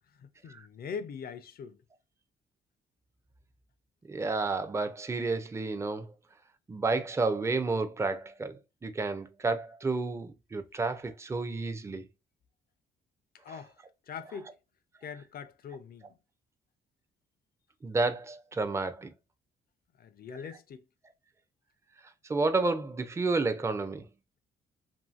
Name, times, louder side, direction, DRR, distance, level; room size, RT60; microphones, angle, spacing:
voice 1, 0.1-1.8 13.4-14.5 15.0-16.2 20.0-20.8, left 6 dB, 50° left, 0.5 m, -42 dB
voice 2, 4.1-6.1 6.7-12.1 17.8-19.1 22.3-24.1, right 3 dB, 15° right, 0.4 m, -31 dB
2.7 x 2.6 x 2.3 m
cardioid pair, 90°, 20 cm